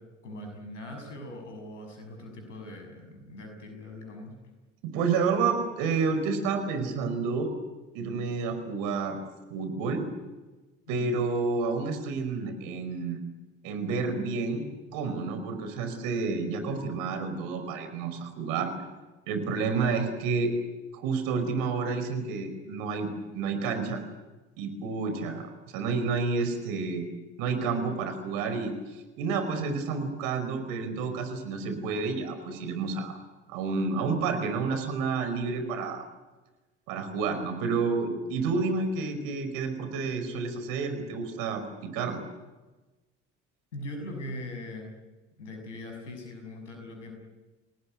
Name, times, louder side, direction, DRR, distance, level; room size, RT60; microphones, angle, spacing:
voice 1, 0.2-4.3 10.9-11.2 43.7-44.9 45.4-47.1, left 1 dB, 90° left, 5 dB, 6.6 m, -41 dB
voice 2, 4.8-7.5 7.9-9.2 9.5-10.0 10.9-13.2 13.6-14.6 14.9-18.7 19.3-20.5 20.9-23.1 23.3-24.0 24.6-27.1 27.4-28.7 29.2-33.2 33.5-36.0 36.9-42.2, right 4 dB, 70° right, 8 dB, 5.2 m, -30 dB
28.5 x 19.0 x 9.7 m, 1.2 s
hypercardioid pair, 60°, 36 cm